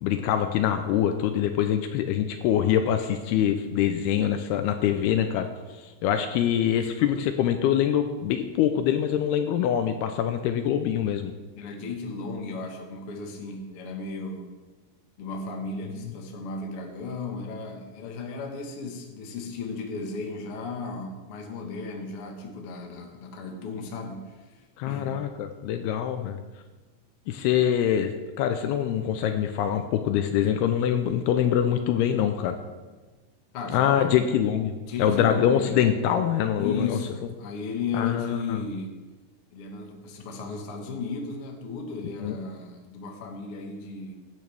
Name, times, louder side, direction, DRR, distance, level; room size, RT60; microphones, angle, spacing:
voice 1, 0.0-11.3 24.8-26.4 27.3-32.6 33.7-37.0 37.9-38.6 42.0-42.4, left 9 dB, 80° left, 7 dB, 2.5 m, -24 dB
voice 2, 11.6-14.5 15.2-25.3 33.5-34.2 34.9-35.8 36.6-39.0 39.5-44.1, left 4 dB, 60° left, 2 dB, 1.5 m, -35 dB
15.5 x 11.5 x 3.5 m, 1.2 s
omnidirectional pair, 4.9 m